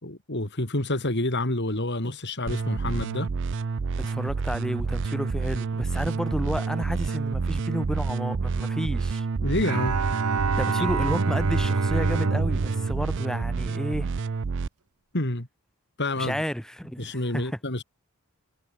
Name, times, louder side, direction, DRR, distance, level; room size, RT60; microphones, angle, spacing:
voice 1, 0.0-3.3 9.4-10.0 15.1-15.5 16.0-16.4 17.0-17.8, left 1 dB, 50° left, 3.3 m, -28 dB
sound 1, 2.5-14.7, right 4 dB, 55° right, 0.5 m, -29 dB
voice 2, 4.0-9.3 10.6-14.1 16.2-17.6, equal, 5° left, 6.2 m, -31 dB
Bowed string instrument, 9.6-14.1, right 4 dB, 80° right, 1.0 m, -27 dB
head